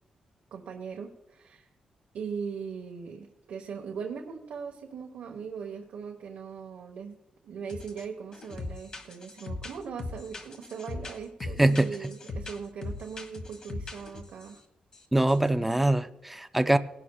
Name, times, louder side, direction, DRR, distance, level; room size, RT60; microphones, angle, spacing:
voice 1, 0.5-1.7 2.1-7.2 7.4-14.6 15.6-15.7, right 6 dB, 85° right, 0 dB, 1.1 m, -39 dB
sound 1, 7.7-8.0 8.3-14.6 14.9-15.0 15.3-15.5, left 3 dB, 30° left, 1.4 m, -40 dB
voice 2, 11.6-11.9 15.1-16.8, right 1 dB, 5° right, 9 dB, 0.4 m, -23 dB
19.0 x 11.0 x 2.3 m, 0.94 s
wide cardioid pair, 175°, 2 cm